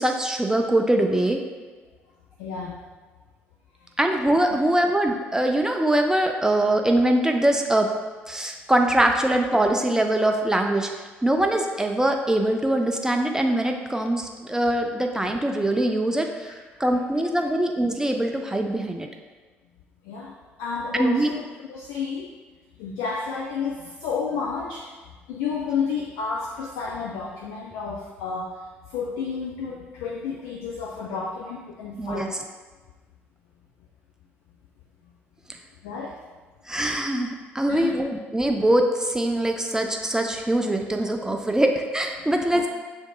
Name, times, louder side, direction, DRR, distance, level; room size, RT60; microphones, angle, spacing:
voice 1, 0.0-1.4 4.0-7.9 8.3-10.9 11.2-16.5 16.8-19.1 20.9-21.3 32.0-32.3 36.7-42.7, right 1 dB, 10° right, 3 dB, 0.4 m, -23 dB
voice 2, 2.4-2.8 3.8-3.9 4.5-4.6 16.5-16.6 20.0-22.3 22.8-24.9 25.3-32.4 35.8-36.2 37.7-38.0 42.2-42.3 42.5-42.6, left 5 dB, 65° left, -1 dB, 0.4 m, -31 dB
7.5 x 2.6 x 2.2 m, 1.3 s
figure-of-eight pair, 50°, 6 cm